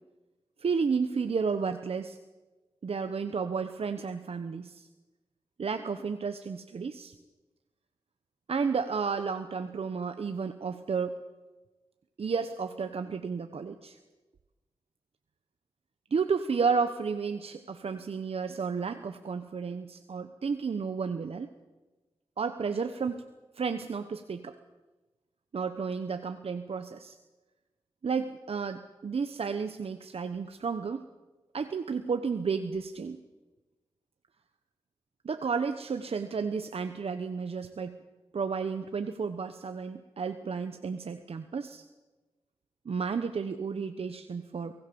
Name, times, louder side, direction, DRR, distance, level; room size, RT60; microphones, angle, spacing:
voice 1, 0.6-2.2 2.8-4.9 5.6-7.1 8.5-11.2 12.2-14.0 16.1-21.5 22.4-23.2 23.6-24.6 25.5-27.1 28.0-31.1 31.5-33.2 35.2-38.0 38.3-41.8 42.8-44.7, right 5 dB, 70° right, 8 dB, 1.1 m, -32 dB
23.0 x 17.0 x 7.0 m, 1.2 s
cardioid pair, 50°, 10 cm